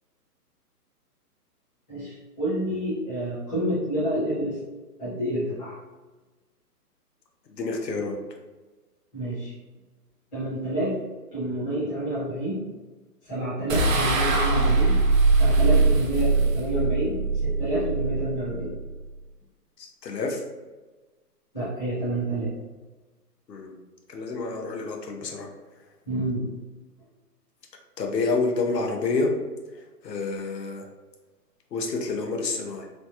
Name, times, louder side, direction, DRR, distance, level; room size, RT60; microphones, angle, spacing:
voice 1, 1.9-4.6 5.0-5.8 9.1-9.5 10.3-11.0 11.3-12.7 13.2-18.7 21.5-22.5 26.1-26.5, right 1 dB, 10° left, -12 dB, 0.7 m, -29 dB
voice 2, 7.5-8.2 19.8-20.4 23.5-23.8 24.1-25.5 28.0-29.3 29.7-30.9 31.7-32.9, left 3 dB, 90° left, 2 dB, 0.8 m, -28 dB
sound 1, 13.7-19.1, right 3 dB, 55° right, 0.6 m, -22 dB
3.1 x 2.1 x 2.8 m, 1.2 s
hypercardioid pair, 155°, 48 cm